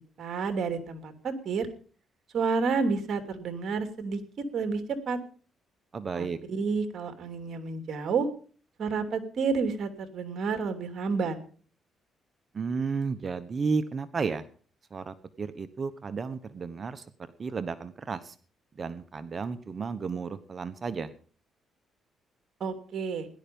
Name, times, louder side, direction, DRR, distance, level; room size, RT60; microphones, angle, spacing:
voice 1, 0.2-1.7 2.3-4.2 4.5-5.2 6.1-8.3 8.8-11.4 22.6-23.3, right 5 dB, 60° right, 8 dB, 2.9 m, -30 dB
voice 2, 5.9-6.4 12.5-14.4 14.9-17.0 17.4-18.3 18.8-21.1, right 5 dB, 40° right, 12 dB, 1.1 m, -33 dB
17.0 x 11.5 x 5.4 m, 0.42 s
cardioid pair, 90°, 0 cm